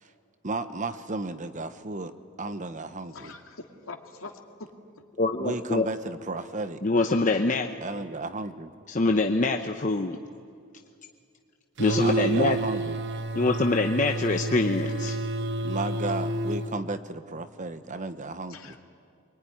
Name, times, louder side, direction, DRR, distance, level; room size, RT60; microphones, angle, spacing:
voice 1, 0.4-3.3 5.4-6.8 7.8-8.7 12.0-13.0 15.6-18.8, right 2 dB, 35° right, 10 dB, 1.0 m, -33 dB
voice 2, 3.1-4.7 18.5-18.8, left 3 dB, 75° left, 3 dB, 2.4 m, -43 dB
voice 3, 5.2-5.9 6.8-7.7 8.9-10.2 11.8-12.6 13.3-15.1, left 3 dB, 35° left, 4 dB, 0.9 m, -24 dB
sound 1, 11.8-16.7, right 2 dB, 55° right, 1.1 m, -30 dB
24.0 x 23.0 x 10.0 m, 2.3 s
head